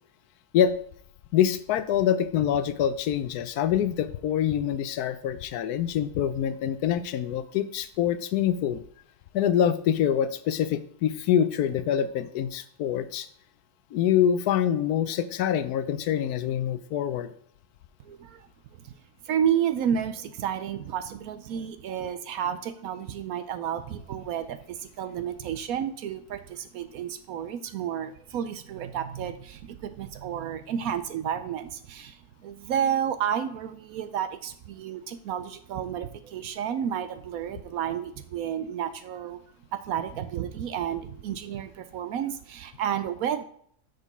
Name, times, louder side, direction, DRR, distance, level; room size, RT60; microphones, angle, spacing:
voice 1, 1.3-8.8 9.3-13.3 13.9-17.3, left 9 dB, 75° left, 13 dB, 1.0 m, -25 dB
voice 2, 18.0-18.5 18.7-18.9 19.2-39.4 39.7-43.5, right 9 dB, 70° right, 10 dB, 0.9 m, -31 dB
6.4 x 5.2 x 5.4 m, 0.64 s
omnidirectional pair, 1.7 m